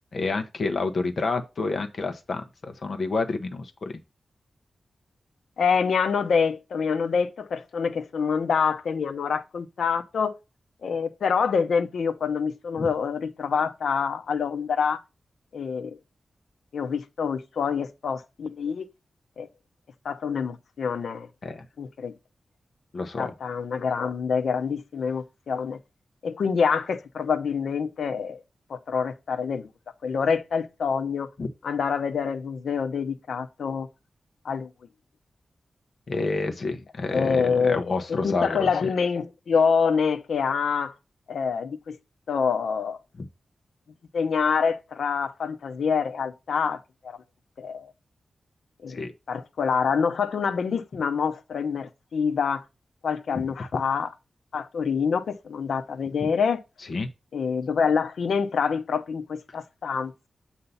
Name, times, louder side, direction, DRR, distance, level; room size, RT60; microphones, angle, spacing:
voice 1, 0.1-3.9 12.8-12.9 21.4-21.7 22.9-23.3 31.4-31.5 36.1-38.9 43.2-43.3 48.9-49.1 56.2-56.3 56.9-57.1, left 3 dB, 45° left, 0.9 m, -29 dB
voice 2, 5.6-10.3 10.8-15.0 15.5-16.0 16.7-18.8 19.4-19.5 20.0-21.3 21.8-22.1 23.2-25.8 26.2-28.4 28.7-29.7 30.0-31.3 31.6-33.9 34.4-34.7 37.1-37.8 38.1-40.9 41.3-42.0 42.3-43.0 44.1-47.2 47.6-47.9 48.8-49.0 49.3-52.6 53.0-54.1 54.5-56.6 57.3-60.3, left 6 dB, 90° left, 0.7 m, -26 dB
8.0 x 2.8 x 5.5 m
wide cardioid pair, 170°, 0 cm